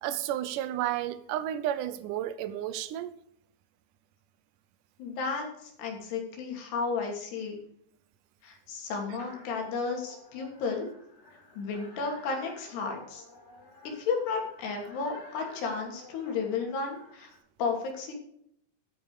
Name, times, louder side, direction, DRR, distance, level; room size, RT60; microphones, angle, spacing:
voice 1, 0.0-3.1, right 12 dB, 80° right, 1.9 m, -32 dB
voice 2, 5.0-7.6 8.4-10.9 11.6-13.2 13.8-17.3 17.6-18.1, left 4 dB, 80° left, 5.0 m, -33 dB
sound 1, 9.2-17.4, left 3 dB, 45° left, 5.6 m, -52 dB
13.0 x 9.8 x 4.9 m
omnidirectional pair, 4.7 m